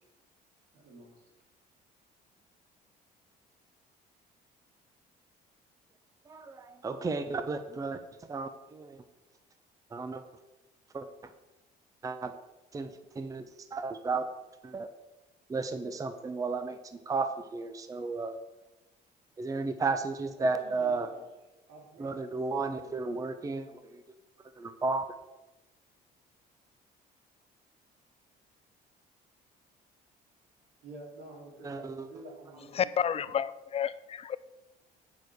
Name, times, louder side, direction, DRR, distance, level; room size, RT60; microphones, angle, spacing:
voice 1, 0.7-1.3 20.4-21.2 21.7-23.1 30.8-33.3, right 2 dB, 80° right, -1 dB, 3.3 m, -50 dB
voice 2, 6.3-8.0 8.3-9.0 9.9-10.2 10.9-11.1 12.0-12.3 12.7-12.9 13.2-13.5 13.7-14.3 14.6-14.9 15.5-16.8 17.1-18.4 19.4-21.1 22.0-24.0 24.6-25.0 31.6-32.1, right 3 dB, 20° right, 9 dB, 0.6 m, -33 dB
voice 3, 32.8-34.4, left 8 dB, 35° left, 16 dB, 0.4 m, -30 dB
8.3 x 6.2 x 6.5 m, 1.1 s
cardioid pair, 110°, 17 cm